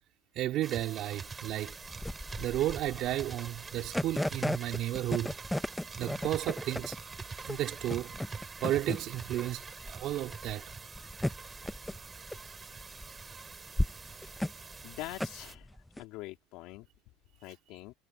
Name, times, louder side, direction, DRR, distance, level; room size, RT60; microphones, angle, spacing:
voice 1, 0.4-1.8 2.4-5.3 6.0-7.0 7.4-8.1 8.6-10.6, right 14 dB, 50° right, 3.8 m, -33 dB
sound 1, 0.6-15.5, right 4 dB, 20° right, 3.6 m, -45 dB
sound 2, 1.3-16.0, left 1 dB, 5° left, 0.6 m, -36 dB
voice 2, 14.0-14.3 14.8-15.7 16.0-16.8 17.4-17.9, left 19 dB, 60° left, 3.0 m, -44 dB
supercardioid pair, 125°, 0 cm